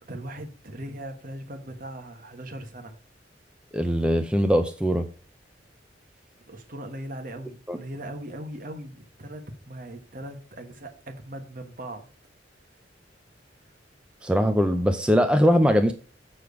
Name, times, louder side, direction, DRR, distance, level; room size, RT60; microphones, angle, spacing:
voice 1, 0.0-2.9 6.5-12.1, right 1 dB, 50° right, 1.4 m, -39 dB
voice 2, 3.7-5.1 7.7-7.8 14.2-15.9, equal, 5° right, 0.5 m, -21 dB
7.0 x 6.2 x 4.8 m
head